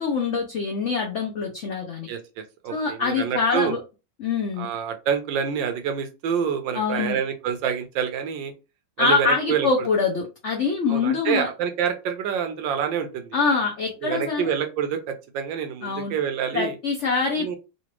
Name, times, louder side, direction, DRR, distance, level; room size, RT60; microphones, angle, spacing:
voice 1, 0.0-2.1 2.7-3.8 4.2-4.7 6.7-7.2 9.0-11.5 13.3-14.5 15.8-16.1 16.5-17.5, left 4 dB, 60° left, 0 dB, 0.7 m, -24 dB
voice 2, 2.1-3.8 4.6-8.5 9.0-9.7 10.9-13.3 14.0-16.7 17.4-17.6, right 7 dB, 85° right, 7 dB, 1.4 m, -27 dB
4.0 x 2.4 x 2.9 m, 0.29 s
omnidirectional pair, 2.0 m